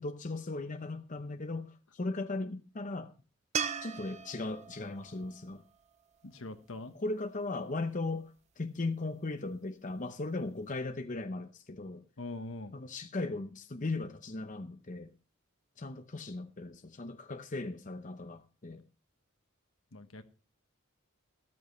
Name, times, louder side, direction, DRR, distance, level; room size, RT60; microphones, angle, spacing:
voice 1, 0.0-3.1 3.8-5.6 6.9-12.1 12.7-15.1 15.8-18.8, left 2 dB, 40° left, 0.7 m, -37 dB
sound 1, 3.5-6.8 10.0-10.1, right 7 dB, 35° right, 0.6 m, -39 dB
voice 2, 6.2-6.9 12.2-12.8 19.9-20.2, left 2 dB, 70° left, 1.2 m, -42 dB
14.0 x 13.0 x 3.2 m
head